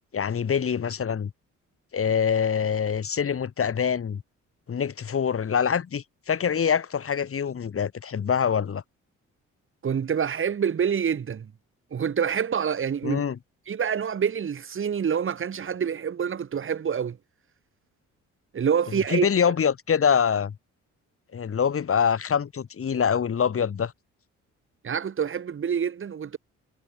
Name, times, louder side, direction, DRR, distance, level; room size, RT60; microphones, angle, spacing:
voice 1, 0.1-1.3 1.9-4.2 4.7-8.8 13.0-13.4 19.1-20.5 21.3-23.9, left 7 dB, 45° left, 4.3 m, -25 dB
voice 2, 9.8-11.5 11.9-13.2 13.7-17.2 18.5-19.3 24.8-26.4, right 7 dB, 45° right, 2.0 m, -26 dB
cardioid pair, 90°, 30 cm